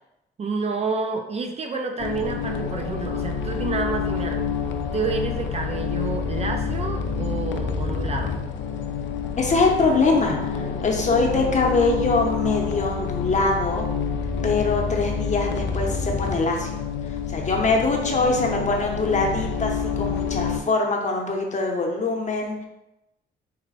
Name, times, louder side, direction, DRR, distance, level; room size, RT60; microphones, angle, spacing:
voice 1, 0.4-4.5 4.9-8.3, right 4 dB, 30° right, 3 dB, 0.4 m, -29 dB
sound 1, 2.0-20.6, left 6 dB, 70° left, 0.4 m, -28 dB
voice 2, 9.4-13.8 14.4-16.8 17.1-22.6, left 3 dB, 35° left, 1 dB, 0.8 m, -23 dB
4.0 x 2.2 x 4.0 m, 0.92 s
cardioid pair, 90°, 20 cm